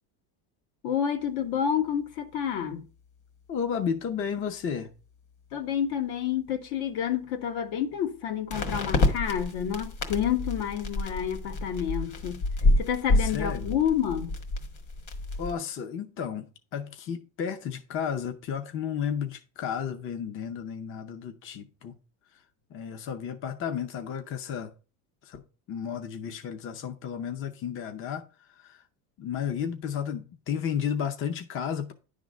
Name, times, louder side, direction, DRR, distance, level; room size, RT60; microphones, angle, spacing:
voice 1, 0.8-2.8 5.5-12.4 12.8-14.3, left 9 dB, 65° left, 1.4 m, -29 dB
sound 1, 1.7-1.8 8.5-15.5, left 2 dB, 45° left, 1.8 m, -28 dB
voice 2, 3.5-4.9 13.2-13.8 15.4-21.9 22.7-24.7 25.2-25.4 25.7-28.2 28.5-28.8 29.2-31.9, left 7 dB, 30° left, 0.7 m, -33 dB
10.5 x 3.7 x 6.3 m
cardioid pair, 145°, 41 cm